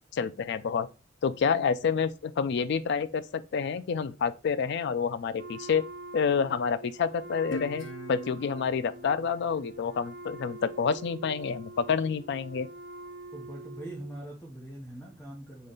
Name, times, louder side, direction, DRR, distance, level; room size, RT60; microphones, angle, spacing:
voice 1, 0.1-0.9 1.2-5.9 6.1-12.7, left 6 dB, 60° left, 0.4 m, -28 dB
Wind instrument woodwind instrument, 5.3-14.2, right 2 dB, 55° right, 0.6 m, -45 dB
Guitar, 7.5-10.7, left 1 dB, 80° left, 0.9 m, -43 dB
voice 2, 13.3-15.7, right 1 dB, 10° left, 0.9 m, -42 dB
3.8 x 3.2 x 3.8 m
head